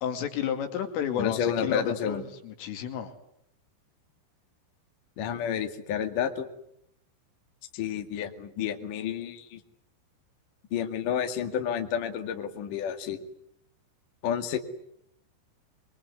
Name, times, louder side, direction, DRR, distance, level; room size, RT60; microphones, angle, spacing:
voice 1, 0.0-3.1, left 8 dB, 85° left, 5 dB, 5.2 m, -31 dB
voice 2, 1.2-2.2 5.2-6.5 7.7-9.6 10.7-13.2 14.2-14.6, left 8 dB, 50° left, 5 dB, 3.2 m, -30 dB
26.5 x 23.0 x 9.8 m, 0.74 s
omnidirectional pair, 5.6 m